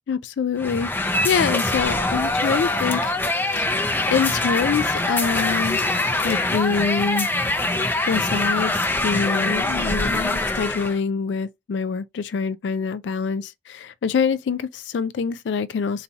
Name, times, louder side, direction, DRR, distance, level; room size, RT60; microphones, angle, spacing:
voice 1, 0.1-5.8 6.2-7.3 8.1-8.7 9.0-16.0, left 6 dB, 85° left, 0.4 m, -25 dB
sound 1, 0.6-11.0, left 2 dB, 10° left, 0.5 m, -23 dB
3.9 x 2.8 x 4.5 m
head